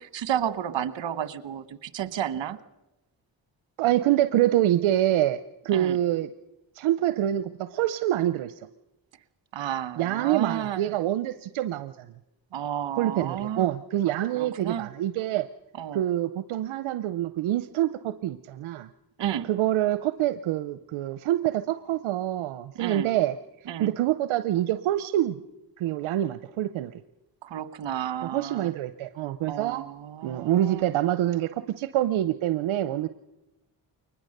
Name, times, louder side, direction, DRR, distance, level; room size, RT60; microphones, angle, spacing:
voice 1, 0.0-2.6 5.7-6.0 9.5-10.9 12.5-13.7 14.4-14.9 15.8-16.0 19.2-19.5 22.7-23.1 23.7-23.9 27.4-28.7 29.5-30.9, right 10 dB, 65° right, 14 dB, 1.3 m, -32 dB
voice 2, 3.8-5.4 5.6-6.3 6.8-8.5 10.0-12.1 13.0-15.5 15.9-18.9 19.4-23.4 23.8-25.4 25.8-26.9 28.2-29.8 30.2-33.1, right 13 dB, 85° right, 12 dB, 0.7 m, -26 dB
23.0 x 20.0 x 6.6 m, 0.98 s
cardioid pair, 55°, 47 cm